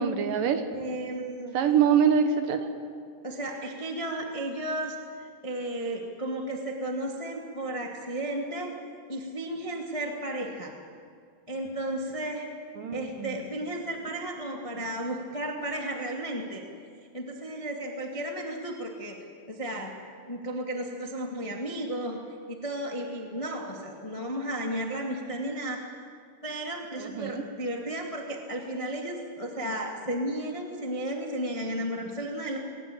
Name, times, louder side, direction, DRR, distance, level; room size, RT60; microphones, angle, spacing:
voice 1, 0.0-0.6 1.5-2.7 12.8-13.4 27.0-27.4, right 7 dB, 65° right, 7 dB, 2.5 m, -24 dB
voice 2, 0.7-1.5 3.2-8.7 9.1-10.7 11.5-12.5 12.9-16.6 17.1-19.2 19.5-19.9 20.3-22.2 22.5-25.8 26.4-32.6, right 1 dB, 60° left, 1 dB, 0.3 m, -33 dB
21.5 x 19.5 x 8.6 m, 2.2 s
omnidirectional pair, 4.7 m